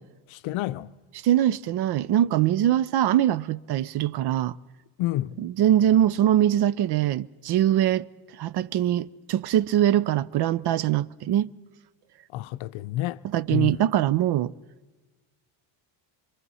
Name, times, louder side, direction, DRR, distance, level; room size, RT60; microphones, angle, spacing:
voice 1, 0.3-0.9 5.0-5.4 12.3-13.2 13.5-13.9, left 14 dB, 70° left, 0.7 m, -29 dB
voice 2, 1.2-4.6 5.4-8.1 8.4-11.5 13.3-14.5, right 11 dB, 55° right, 0.6 m, -22 dB
25.0 x 22.0 x 5.6 m
cardioid pair, 110°, 49 cm